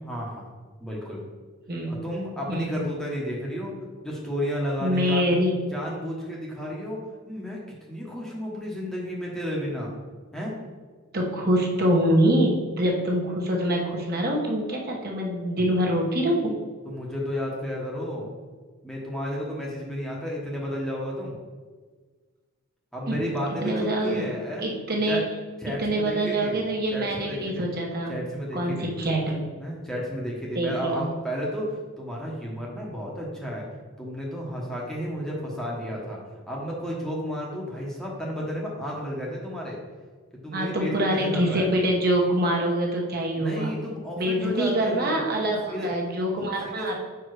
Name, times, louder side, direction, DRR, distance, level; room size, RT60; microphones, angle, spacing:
voice 1, 0.0-0.5 0.8-1.2 1.9-3.7 4.0-5.3 5.7-7.0 7.2-9.9 10.3-10.5 16.8-18.3 18.8-21.4 22.9-24.7 25.1-25.2 25.6-27.6 28.1-28.9 29.6-33.7 34.0-36.2 36.5-39.8 40.3-41.7 43.4-45.9 46.3-46.9, equal, ahead, -4 dB, 1.0 m, -32 dB
voice 2, 1.7-2.0 2.5-2.9 4.8-5.5 11.1-16.6 23.1-23.3 23.6-24.3 24.6-25.3 25.7-28.2 28.5-29.4 30.5-31.0 40.5-43.7 44.2-46.9, right 1 dB, 45° right, -1 dB, 1.0 m, -25 dB
5.3 x 4.7 x 4.7 m, 1.5 s
head